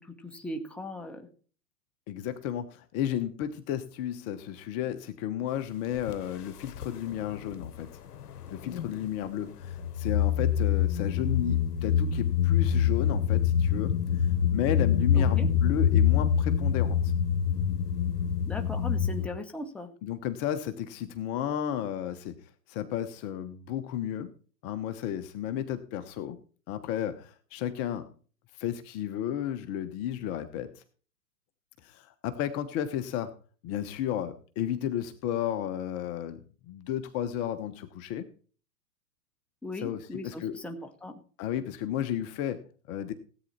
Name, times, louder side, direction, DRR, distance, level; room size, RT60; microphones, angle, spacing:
voice 1, 0.1-1.3 15.1-15.5 18.5-19.9 39.6-40.7 41.0-41.1, left 2 dB, ahead, 4 dB, 1.3 m, -38 dB
voice 2, 2.1-8.0 8.5-17.1 20.0-22.3 22.7-24.3 24.6-26.4 26.7-28.1 28.6-30.8 31.8-33.3 33.6-38.3 39.8-40.6 41.4-43.1, left 10 dB, 30° left, 10 dB, 1.1 m, -33 dB
sound 1, 6.0-6.1 6.6-7.8 8.1-9.1 9.6-19.3, left 8 dB, 70° left, 1.2 m, -26 dB
17.0 x 9.1 x 4.3 m, 0.40 s
hypercardioid pair, 125°, 48 cm